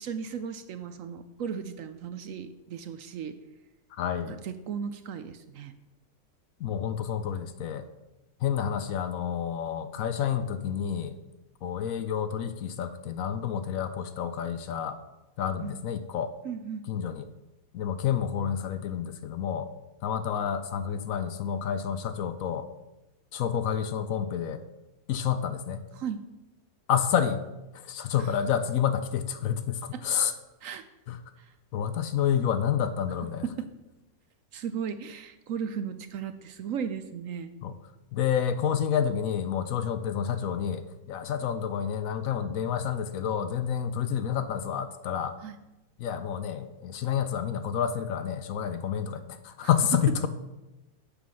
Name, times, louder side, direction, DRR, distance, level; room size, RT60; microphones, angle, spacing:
voice 1, 0.0-3.4 4.3-5.7 15.6-15.8 16.4-16.8 25.9-26.2 28.2-28.4 29.9-30.0 30.6-30.8 31.4-31.5 33.4-33.7 34.5-37.5 45.4-45.6 49.6-50.0, right 7 dB, 65° right, 10 dB, 0.9 m, -36 dB
voice 2, 4.0-4.4 6.6-7.9 8.4-11.2 11.6-15.0 15.4-16.3 16.9-17.2 17.7-19.7 20.0-22.7 23.3-24.6 25.1-25.8 26.9-27.4 27.7-30.3 31.1-31.2 31.7-33.4 37.6-37.8 38.1-45.4 46.0-50.3, left 8 dB, 70° left, 10 dB, 1.0 m, -29 dB
7.3 x 6.7 x 6.2 m, 1.0 s
omnidirectional pair, 1.6 m